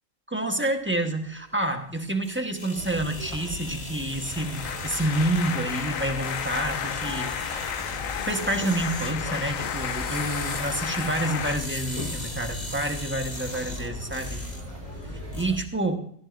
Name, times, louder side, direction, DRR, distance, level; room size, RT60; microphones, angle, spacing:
voice 1, 0.3-7.6 8.3-14.4 15.3-16.1, right 1 dB, 10° right, 4 dB, 1.2 m, -28 dB
sound 1, 0.7-15.4, left 2 dB, 35° left, 1.7 m, -41 dB
sound 2, 2.8-15.6, left 1 dB, 30° right, 3.3 m, -38 dB
sound 3, 4.1-11.6, left 8 dB, 80° left, 1.2 m, -32 dB
17.5 x 15.0 x 2.6 m, 0.62 s
omnidirectional pair, 1.4 m